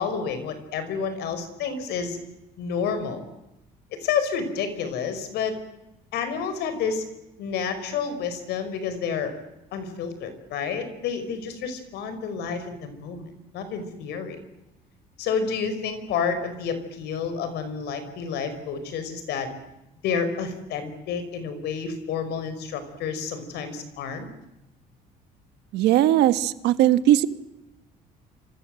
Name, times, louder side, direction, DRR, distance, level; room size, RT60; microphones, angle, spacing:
voice 1, 0.0-2.2 2.6-3.2 3.9-5.6 6.1-7.1 7.4-9.3 9.7-13.3 13.5-14.4 15.2-19.5 20.0-24.3, left 6 dB, 80° left, 10 dB, 5.0 m, -29 dB
voice 2, 25.7-27.3, right 13 dB, 80° right, 13 dB, 1.4 m, -19 dB
28.0 x 26.5 x 7.7 m, 0.93 s
cardioid pair, 110°, 17 cm